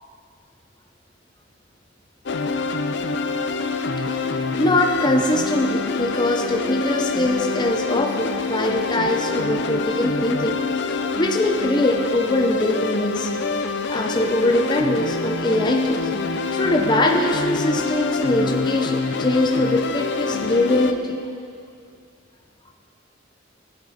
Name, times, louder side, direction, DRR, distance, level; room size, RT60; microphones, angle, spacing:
sound 1, 2.3-20.9, left 4 dB, 60° left, 0.6 m, -26 dB
voice 1, 4.6-10.6 11.2-13.3 13.9-16.1 16.5-21.2, left 1 dB, 25° left, 2 dB, 0.7 m, -22 dB
16.5 x 9.6 x 4.3 m, 2.3 s
head